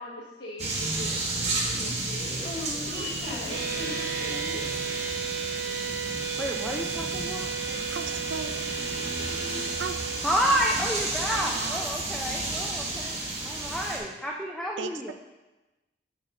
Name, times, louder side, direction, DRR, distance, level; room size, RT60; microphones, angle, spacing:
voice 1, 0.0-2.5 2.9-4.0, left 1 dB, 65° left, -6 dB, 1.1 m, -42 dB
sound 1, 0.6-14.0, right 2 dB, 35° right, 1.2 m, -32 dB
voice 2, 2.4-5.3, left 2 dB, 30° left, 0 dB, 0.9 m, -40 dB
sound 2, 3.5-10.2, right 7 dB, 65° right, 1.3 m, -34 dB
voice 3, 6.4-7.5 10.2-15.1, equal, ahead, -1 dB, 0.4 m, -30 dB
voice 4, 7.4-8.5 9.8-10.0 11.3-11.8 14.8-15.1, right 6 dB, 85° right, 9 dB, 0.5 m, -37 dB
7.6 x 4.0 x 5.2 m, 1.1 s
head